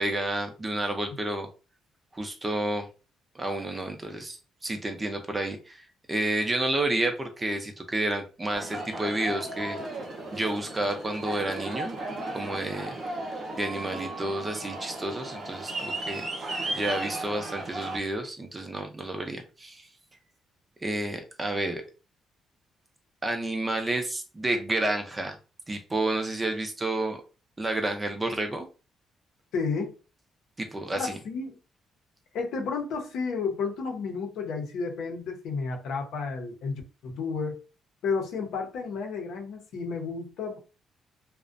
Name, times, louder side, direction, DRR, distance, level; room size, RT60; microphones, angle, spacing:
voice 1, 0.0-1.5 2.1-2.9 3.3-5.8 6.1-9.8 10.3-11.9 12.3-13.0 13.6-16.2 16.7-19.9 20.8-21.8 23.2-25.4 25.7-27.2 27.6-28.7 30.6-31.2, right 1 dB, 20° right, 0.5 m, -30 dB
Aircraft, 8.5-18.0, right 2 dB, 55° right, 0.9 m, -35 dB
voice 2, 29.5-29.9 30.9-31.6 32.3-37.6 38.0-40.6, left 4 dB, 80° left, 0.6 m, -32 dB
2.4 x 2.1 x 2.5 m
cardioid pair, 90°, 0 cm